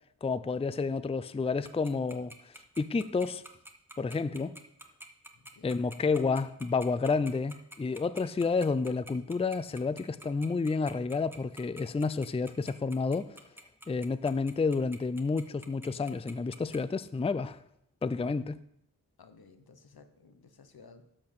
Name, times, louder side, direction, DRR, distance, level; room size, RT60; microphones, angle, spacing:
voice 1, 0.2-2.3 2.8-3.4 4.0-4.6 5.6-13.4 13.9-17.6 18.0-18.6, left 4 dB, 15° left, 0.4 m, -30 dB
Tick-tock, 1.6-16.8, right 1 dB, 5° right, 1.1 m, -47 dB
voice 2, 5.3-5.8 19.2-21.0, left 4 dB, 85° left, 1.0 m, -56 dB
11.5 x 4.4 x 6.6 m
wide cardioid pair, 55°, 36 cm